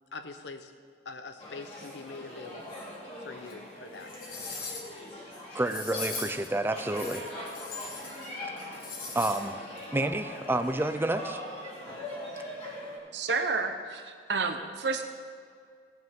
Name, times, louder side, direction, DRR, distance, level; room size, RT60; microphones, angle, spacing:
voice 1, 0.1-0.7 1.0-2.8 3.2-4.1 4.5-4.7, left 3 dB, 75° left, 8 dB, 0.9 m, -43 dB
sound 1, 1.4-13.0, left 1 dB, 35° left, 3.0 m, -42 dB
sound 2, 3.5-3.6 4.0-5.0 5.6-6.5 6.9-8.3 8.6-9.4 9.8-9.9, left 4 dB, 55° left, 1.9 m, -40 dB
voice 2, 5.5-7.3 7.8-7.9 9.1-9.6 9.9-11.4, right 2 dB, 15° right, 9 dB, 0.5 m, -29 dB
voice 3, 13.1-15.0, right 4 dB, 75° right, 5 dB, 1.0 m, -30 dB
17.5 x 9.1 x 3.7 m, 2.1 s
head